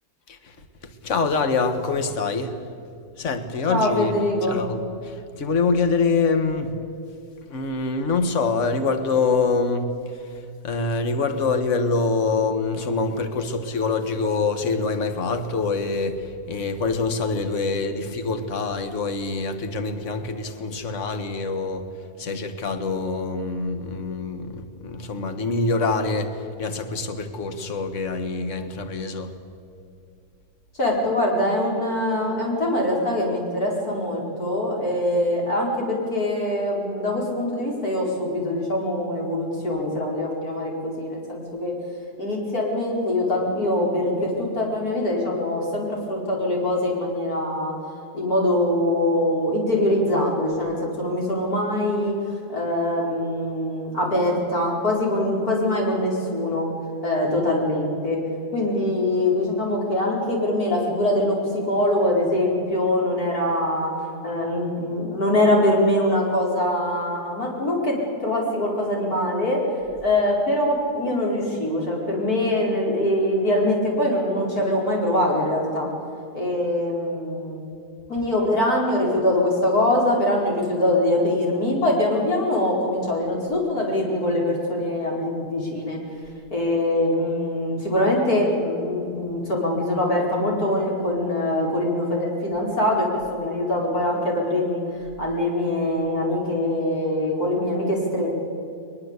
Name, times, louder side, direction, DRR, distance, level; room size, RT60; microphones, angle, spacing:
voice 1, 0.3-2.6 3.2-6.8 7.4-21.9 22.2-29.3, left 4 dB, 50° left, 8 dB, 1.8 m, -25 dB
voice 2, 3.7-4.6 30.7-41.7 42.2-47.7 48.1-52.1 52.5-56.7 57.0-58.2 58.5-63.9 64.2-69.6 70.0-75.9 76.3-77.6 78.1-86.0 86.5-94.8 95.2-98.4, left 1 dB, 70° left, -2 dB, 5.3 m, -23 dB
21.5 x 21.5 x 8.2 m, 2.5 s
omnidirectional pair, 1.7 m